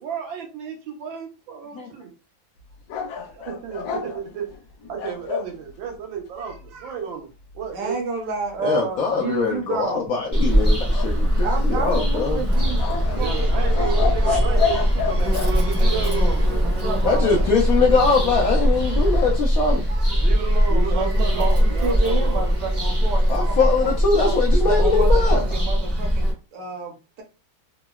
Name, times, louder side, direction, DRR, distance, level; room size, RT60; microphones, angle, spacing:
voice 1, 0.0-2.1 3.2-4.5 4.9-7.3 7.5-8.0 13.1-16.7 19.6-22.4 22.9-23.1 23.4-23.6 23.9-24.0, right 7 dB, 85° right, 3 dB, 1.5 m, -33 dB
sound 1, 2.9-5.5 10.9-11.8 12.8-15.5, left 6 dB, 90° left, 1.4 m, -29 dB
voice 2, 7.7-10.1 11.4-14.6 16.8-17.5 20.7-24.3 24.8-27.2, right 3 dB, 70° right, 2 dB, 1.3 m, -30 dB
voice 3, 8.6-12.4 17.0-19.8 23.3-25.4, left 4 dB, 70° left, -2 dB, 0.8 m, -22 dB
Bird vocalization bird call bird song, 10.3-26.3, equal, 25° right, 0.6 m, -21 dB
sound 2, 12.5-19.4, left 2 dB, 35° left, 0.7 m, -32 dB
3.7 x 2.0 x 2.2 m, 0.32 s
omnidirectional pair, 2.1 m